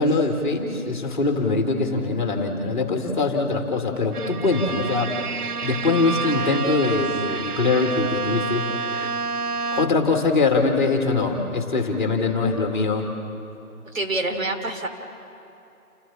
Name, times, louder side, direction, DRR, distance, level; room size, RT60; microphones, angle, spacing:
voice 1, 0.0-5.1 5.6-8.6 9.7-13.1, left 3 dB, 30° left, 3 dB, 2.0 m, -22 dB
Bowed string instrument, 4.1-10.2, right 4 dB, 90° right, 1.1 m, -29 dB
voice 2, 13.9-14.9, right 2 dB, 60° right, 4 dB, 3.0 m, -26 dB
28.5 x 14.5 x 7.4 m, 2.9 s
figure-of-eight pair, 165°, 45 cm